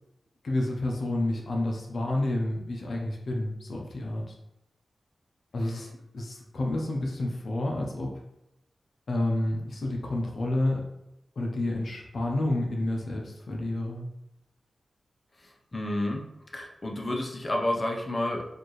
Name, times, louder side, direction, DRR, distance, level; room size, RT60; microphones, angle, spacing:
voice 1, 0.4-4.3 5.5-5.9 6.1-8.1 9.1-10.9 11.4-14.1, left 1 dB, 75° left, 0 dB, 0.6 m, -29 dB
voice 2, 15.7-16.2 16.5-18.5, left 1 dB, 35° left, 0 dB, 0.6 m, -30 dB
4.3 x 2.6 x 3.1 m, 0.88 s
cardioid pair, 65°, 0 cm